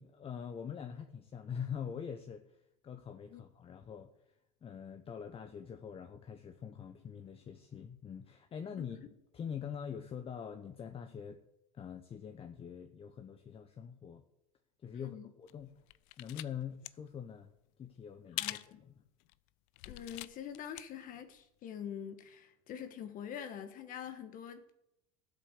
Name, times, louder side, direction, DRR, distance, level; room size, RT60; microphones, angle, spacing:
voice 1, 0.0-4.1 4.6-9.0 9.3-11.4 11.7-14.2 14.8-15.7 16.2-17.5 17.8-18.9, left 7 dB, 30° left, 7 dB, 1.1 m, -44 dB
voice 2, 14.9-15.3 18.3-18.8 19.8-24.7, left 9 dB, 50° left, 8 dB, 1.4 m, -45 dB
sound 1, 15.5-16.5 16.7-16.9 18.4-18.7 19.2-19.3 19.8-20.8 21.2-21.3, left 19 dB, 65° left, 0.6 m, -42 dB
15.0 x 8.0 x 6.7 m, 0.83 s
hypercardioid pair, 95°, 18 cm